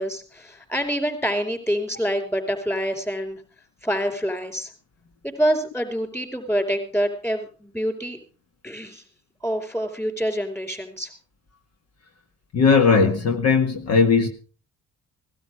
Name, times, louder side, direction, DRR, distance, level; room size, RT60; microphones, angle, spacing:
voice 1, 0.0-3.4 3.8-4.7 5.2-8.2 8.6-9.0 9.4-11.1, equal, 10° left, 6 dB, 5.0 m, -26 dB
voice 2, 12.5-14.3, left 5 dB, 55° left, 5 dB, 2.0 m, -18 dB
18.5 x 12.5 x 4.9 m, 0.40 s
cardioid pair, 90°, 30 cm